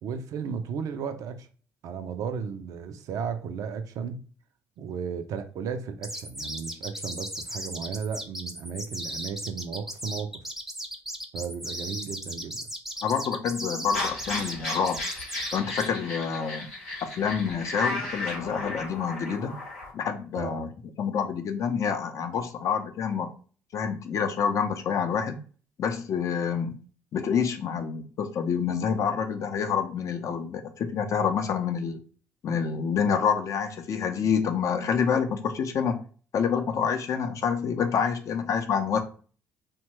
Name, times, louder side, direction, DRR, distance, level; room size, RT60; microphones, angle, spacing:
voice 1, 0.0-1.5 1.8-4.2 4.8-10.4 11.3-12.7 20.3-20.7, right 6 dB, 60° right, 0.4 m, -34 dB
sound 1, 6.0-15.9, equal, 5° right, 0.5 m, -36 dB
voice 2, 13.0-15.0 15.5-16.7 17.0-19.5 19.9-20.7 21.0-23.3 23.7-25.4 25.8-26.8 27.1-32.0 32.4-36.0 36.3-39.0, left 7 dB, 50° left, 0.5 m, -27 dB
sound 2, 13.9-19.9, left 2 dB, 85° left, 0.8 m, -34 dB
2.8 x 2.1 x 3.0 m
hypercardioid pair, 50°, 7 cm